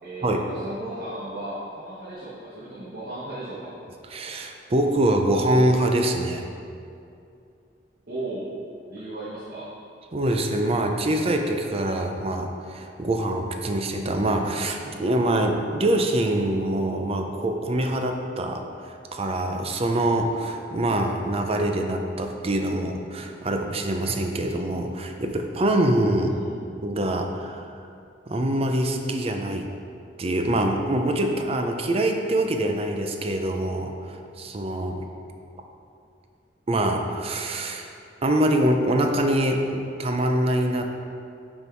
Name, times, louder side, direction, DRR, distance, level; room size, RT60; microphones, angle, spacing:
voice 1, 0.0-3.7 8.1-8.5 8.9-9.7 26.1-26.8, right 1 dB, 55° right, -9 dB, 1.2 m, -36 dB
voice 2, 4.1-6.5 10.1-26.4 26.8-27.7 28.3-29.7 30.2-35.1 36.7-37.9 38.2-40.9, right 1 dB, 35° right, 4 dB, 0.5 m, -24 dB
6.8 x 4.4 x 4.5 m, 2.5 s
head